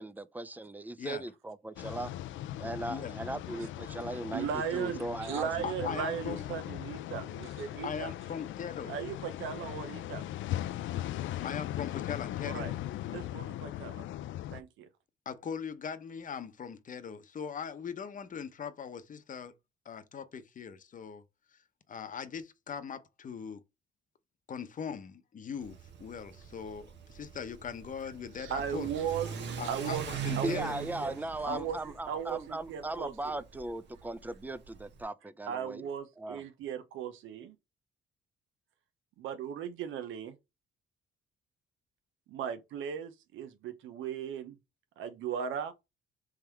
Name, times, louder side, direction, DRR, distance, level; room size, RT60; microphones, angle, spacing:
voice 1, 0.0-2.1 2.6-5.9 30.4-35.9 36.2-36.4, right 2 dB, 10° right, 0.4 m, -38 dB
sound 1, 1.8-14.6, left 13 dB, 75° left, 0.4 m, -39 dB
voice 2, 4.3-8.1 8.9-10.2 12.5-12.7 13.1-14.0 14.5-14.9 28.4-30.1 30.4-31.1 31.4-33.4 35.5-37.6 39.2-40.4 42.3-44.6 45.0-45.7, right 8 dB, 80° right, 0.7 m, -37 dB
voice 3, 5.6-6.4 7.8-8.9 11.4-12.7 15.3-19.5 19.8-21.2 21.5-21.6 21.9-23.6 24.5-28.9 29.6-30.8 31.5-31.6, left 7 dB, 40° left, 0.8 m, -40 dB
Car / Accelerating revving vroom, 25.6-35.0, right 8 dB, 65° right, 1.0 m, -42 dB
3.6 x 3.2 x 4.5 m
cardioid pair, 90°, 20 cm